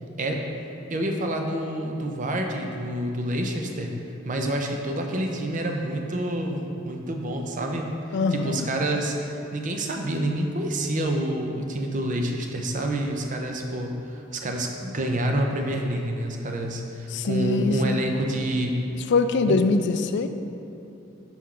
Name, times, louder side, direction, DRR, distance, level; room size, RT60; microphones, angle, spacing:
voice 1, 0.9-4.0 4.2-18.8 19.5-19.6, right 1 dB, 40° right, 3 dB, 0.6 m, -28 dB
voice 2, 8.1-8.7 17.1-18.0 19.1-20.3, left 3 dB, 60° left, 9 dB, 0.3 m, -23 dB
6.2 x 5.7 x 3.8 m, 2.8 s
head